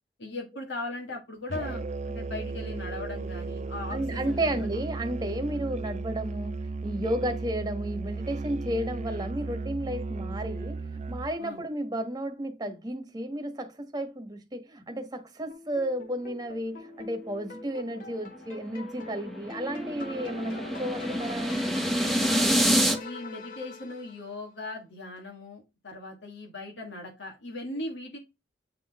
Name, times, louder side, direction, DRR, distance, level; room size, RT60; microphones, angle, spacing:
voice 1, 0.2-4.6 11.4-11.6 22.3-28.2, left 2 dB, 90° left, 1.7 m, -39 dB
Musical instrument, 1.5-11.4, right 3 dB, 40° right, 0.4 m, -35 dB
voice 2, 3.9-21.7, right 1 dB, 20° right, 1.3 m, -33 dB
sound 1, 15.5-24.4, left 2 dB, 50° left, 1.5 m, -43 dB
sound 2, 18.7-23.0, equal, ahead, 1.1 m, -27 dB
8.4 x 3.9 x 3.4 m
head